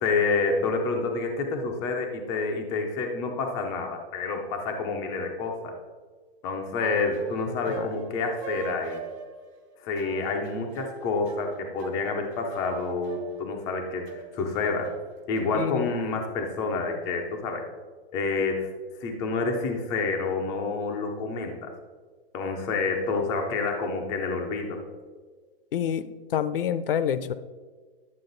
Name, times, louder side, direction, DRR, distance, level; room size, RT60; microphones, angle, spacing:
voice 1, 0.0-5.7 6.4-9.0 9.8-14.9 15.3-17.6 18.1-18.7 19.0-21.7 22.3-24.8, left 4 dB, 10° left, 3 dB, 0.5 m, -28 dB
sound 1, 6.9-15.4, right 5 dB, 20° right, 0.7 m, -42 dB
voice 2, 15.5-15.9 25.7-27.3, left 9 dB, 60° left, 14 dB, 0.7 m, -28 dB
11.0 x 7.5 x 3.9 m, 1.4 s
hypercardioid pair, 165°, 31 cm